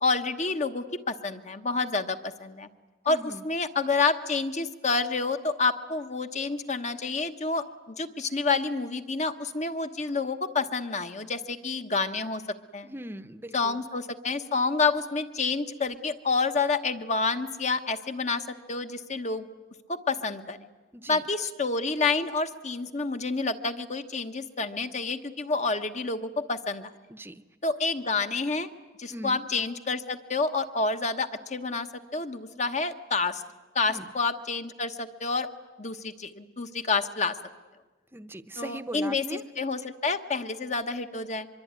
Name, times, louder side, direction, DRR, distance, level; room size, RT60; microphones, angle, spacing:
voice 1, 0.0-2.7 3.0-12.4 12.7-12.9 13.5-19.5 19.9-20.6 21.1-26.9 27.6-28.7 29.0-33.4 33.7-35.5 35.8-37.4 38.6-39.3 39.6-41.5, left 4 dB, 40° left, 8 dB, 1.2 m, -29 dB
voice 2, 3.1-3.4 12.8-13.8 20.9-21.2 27.1-27.4 29.1-29.4 33.9-34.1 38.1-39.4, right 1 dB, 10° right, 11 dB, 0.8 m, -40 dB
24.0 x 23.5 x 9.6 m, 1.3 s
head